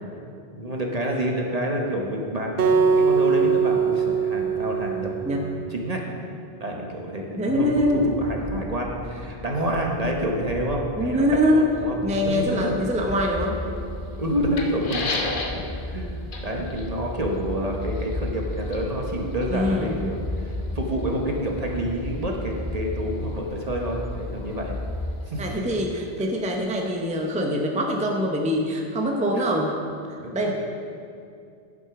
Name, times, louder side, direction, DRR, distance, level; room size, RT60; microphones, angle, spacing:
voice 1, 0.5-6.0 6.6-11.2 11.5-12.8 14.2-15.2 15.5-16.1 16.4-24.8 25.3-25.5 29.3-29.4 30.2-30.3, equal, 35° right, 0 dB, 1.0 m, -28 dB
Acoustic guitar, 2.6-5.8, right 5 dB, 65° right, 0.8 m, -22 dB
voice 2, 7.4-8.0 11.0-11.7 12.0-13.6 19.5-20.1 25.4-29.7 30.3-30.5, equal, 5° right, 1 dB, 0.7 m, -23 dB
sound 1, 7.8-25.1, left 1 dB, 20° left, 1.0 m, -35 dB
sound 2, 12.7-27.1, left 3 dB, 50° left, 1.0 m, -39 dB
10.5 x 6.2 x 5.9 m, 2.5 s
omnidirectional pair, 1.1 m